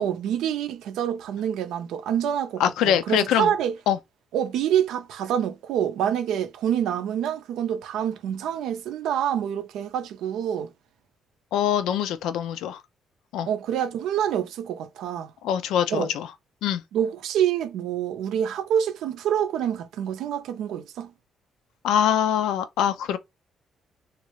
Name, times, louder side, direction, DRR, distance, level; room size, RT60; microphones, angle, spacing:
voice 1, 0.0-3.8 4.3-10.7 13.5-15.3 15.9-16.1 16.9-21.1, right 9 dB, 85° right, 0.5 m, -27 dB
voice 2, 2.6-3.5 3.9-4.0 11.5-12.8 13.3-13.5 15.4-16.3 16.6-16.8 21.8-23.2, left 9 dB, 90° left, 0.4 m, -23 dB
3.1 x 2.5 x 3.0 m
cardioid pair, 90°, 0 cm